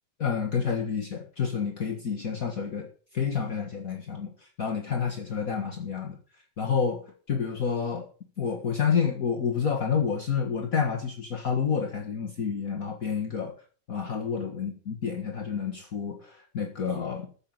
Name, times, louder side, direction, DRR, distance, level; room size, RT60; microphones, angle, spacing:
voice 1, 0.2-6.2 6.6-8.1 8.4-13.5 13.9-17.3, left 6 dB, 45° left, 1 dB, 1.0 m, -29 dB
14.0 x 6.0 x 7.6 m, 0.41 s
omnidirectional pair, 3.7 m